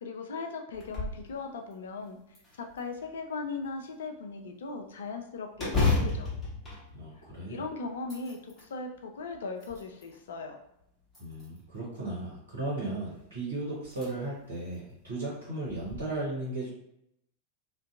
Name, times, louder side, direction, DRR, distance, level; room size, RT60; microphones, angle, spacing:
voice 1, 0.0-2.2 2.6-6.3 7.5-10.6, left 4 dB, 65° left, 4 dB, 0.3 m, -38 dB
sound 1, 0.7-1.3 1.7-1.8 2.3-3.2 5.6-7.6 8.0-8.7 9.3-10.2 11.1-11.8 13.2-13.3 13.8-14.1 14.5-14.6 15.7-16.0, left 3 dB, 15° left, 1.0 m, -32 dB
voice 2, 6.9-7.6 11.2-16.7, right 2 dB, 65° right, -6 dB, 0.9 m, -36 dB
2.6 x 2.2 x 2.4 m, 0.79 s
figure-of-eight pair, 90°, 0 cm